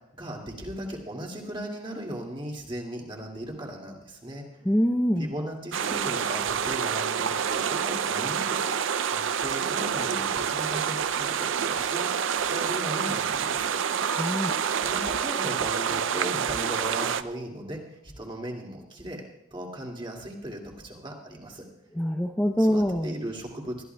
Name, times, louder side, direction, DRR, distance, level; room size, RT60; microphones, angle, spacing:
voice 1, 0.1-4.4 5.2-8.8 9.1-13.7 14.8-19.2 19.5-21.6 22.6-23.8, right 1 dB, 25° right, 0 dB, 2.3 m, -37 dB
voice 2, 4.6-5.3 14.1-14.5 22.0-23.2, equal, 10° left, 2 dB, 0.7 m, -24 dB
sound 1, 5.7-17.2, right 7 dB, 65° right, 0.5 m, -27 dB
21.0 x 14.0 x 2.3 m, 0.90 s
head